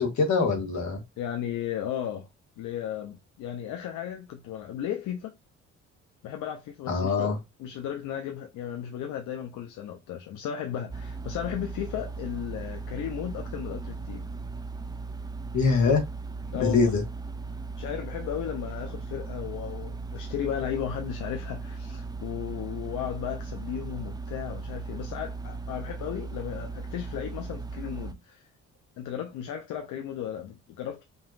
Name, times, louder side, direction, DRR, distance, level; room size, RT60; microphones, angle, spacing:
voice 1, 0.0-1.0 6.9-7.4 15.5-16.0 16.6-17.0, left 4 dB, 70° left, 1.8 m, -23 dB
voice 2, 1.2-2.3 2.6-5.3 6.2-14.3 16.5-17.0 17.8-28.5 29.0-31.0, left 10 dB, 85° left, 0.7 m, -35 dB
sound 1, 10.9-28.1, right 4 dB, 15° right, 0.4 m, -37 dB
5.4 x 2.8 x 2.5 m
cardioid pair, 90°, 30 cm